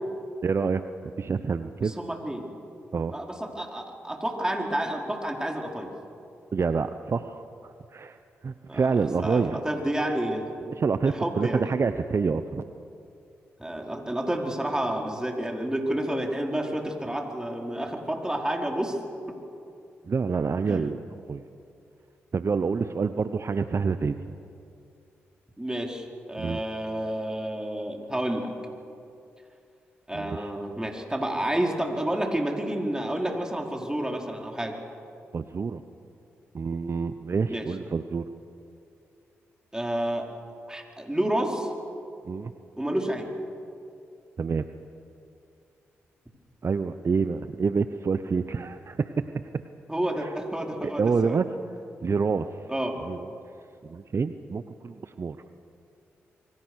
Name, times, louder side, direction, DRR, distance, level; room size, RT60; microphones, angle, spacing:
voice 1, 0.4-0.8 1.2-1.9 2.9-3.1 6.5-8.2 8.4-9.6 10.8-12.6 20.1-21.0 21.3-21.4 22.3-24.3 26.4-26.6 30.1-30.5 35.3-35.8 36.5-38.2 42.2-42.5 44.4-44.6 46.6-49.1 50.2-50.3 50.8-51.5 52.0-52.5 53.0-53.3 53.8-55.4, right 5 dB, 45° right, 10 dB, 0.9 m, -27 dB
voice 2, 1.8-2.5 3.1-5.9 8.7-8.9 9.2-10.5 11.0-11.6 13.6-19.0 19.3-19.4 20.7-20.9 25.6-28.5 30.1-34.7 37.5-37.7 39.7-40.3 40.7-41.7 42.8-43.3 49.9-51.3 52.7-53.0, right 1 dB, 10° right, 1 dB, 4.8 m, -30 dB
27.0 x 23.0 x 6.5 m, 2.5 s
hypercardioid pair, 40°, 6 cm